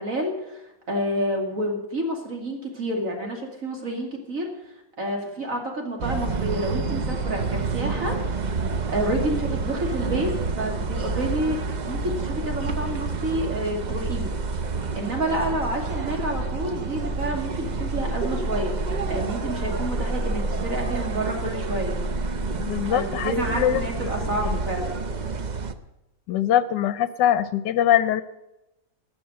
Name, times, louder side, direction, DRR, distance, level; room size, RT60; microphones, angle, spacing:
voice 1, 0.0-8.2 8.9-10.3 10.6-14.3 14.9-18.7 19.1-21.9 22.9-24.9, right 1 dB, 50° right, 1 dB, 2.8 m, -29 dB
sound 1, 6.0-25.7, right 3 dB, 80° right, 0.4 m, -28 dB
voice 2, 22.6-23.9 24.2-24.3 26.3-28.2, left 10 dB, 80° left, 14 dB, 1.3 m, -22 dB
19.0 x 6.8 x 7.8 m, 0.92 s
omnidirectional pair, 1.9 m